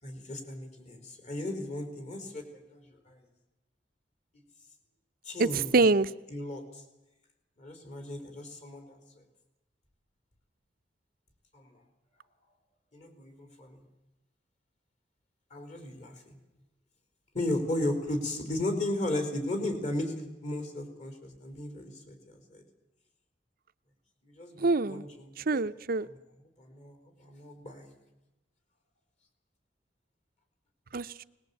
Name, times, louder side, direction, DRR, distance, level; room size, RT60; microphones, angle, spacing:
voice 1, 0.0-2.4 2.7-3.2 4.3-4.4 5.2-5.8 6.3-6.8 7.6-9.2 11.5-11.8 12.9-13.8 15.5-16.4 17.3-22.6 24.2-25.6 26.0-26.2 26.6-28.0, left 1 dB, 40° left, 5 dB, 4.4 m, -36 dB
voice 2, 5.4-6.1 24.6-25.0 25.5-26.1 30.9-31.2, right 3 dB, 55° right, 13 dB, 0.7 m, -25 dB
21.5 x 20.5 x 8.5 m, 1.0 s
head